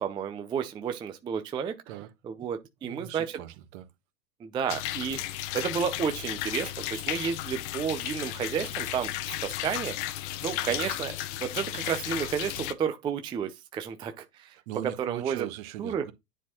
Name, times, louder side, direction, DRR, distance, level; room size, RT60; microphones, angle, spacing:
voice 1, 0.0-1.8 2.2-3.4 4.4-9.1 9.4-9.9 10.4-11.1 11.4-14.6 15.0-15.5 15.8-16.1, right 7 dB, 10° right, 0.4 m, -31 dB
voice 2, 2.8-3.9 10.6-10.9 14.7-16.1, right 13 dB, 55° right, 1.4 m, -39 dB
sound 1, 4.7-12.7, left 14 dB, 45° left, 0.9 m, -34 dB
9.9 x 4.4 x 2.9 m
hypercardioid pair, 105°, 48 cm